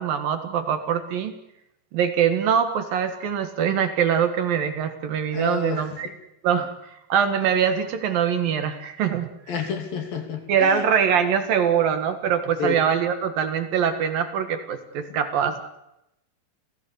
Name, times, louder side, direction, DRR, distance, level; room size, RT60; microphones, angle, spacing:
voice 1, 0.0-1.3 1.9-6.1 6.4-6.7 7.1-9.3 10.5-15.6, right 8 dB, 65° right, 8 dB, 3.2 m, -23 dB
voice 2, 5.3-6.0 9.5-10.8 12.6-12.8, left 6 dB, 60° left, 6 dB, 4.4 m, -29 dB
29.5 x 16.5 x 8.0 m, 0.86 s
omnidirectional pair, 4.8 m